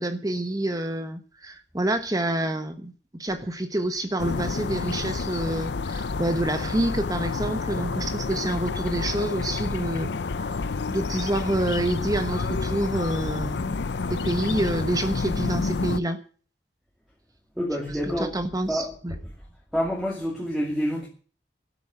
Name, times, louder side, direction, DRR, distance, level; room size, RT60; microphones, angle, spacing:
voice 1, 0.0-10.1 10.4-10.6 10.9-13.8 14.1-16.2 18.3-19.1, right 1 dB, 20° right, 8 dB, 1.1 m, -28 dB
sound 1, 4.2-16.0, left 4 dB, 75° left, 0.6 m, -29 dB
voice 2, 17.6-19.3 19.7-21.1, equal, ahead, -3 dB, 2.5 m, -28 dB
12.5 x 9.4 x 7.8 m, 0.40 s
head